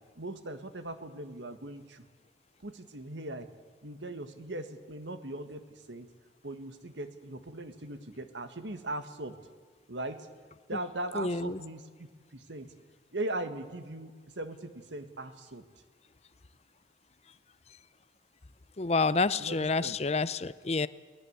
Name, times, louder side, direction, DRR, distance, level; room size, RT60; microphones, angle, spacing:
voice 1, 0.2-2.0 2.6-3.5 3.8-6.1 6.4-9.4 9.9-10.3 10.7-12.7 13.1-15.6 19.4-20.0, right 1 dB, 75° right, 9 dB, 1.7 m, -39 dB
voice 2, 11.1-11.6 18.8-20.9, left 3 dB, 35° left, 16 dB, 0.6 m, -28 dB
22.5 x 19.5 x 8.1 m, 1.5 s
head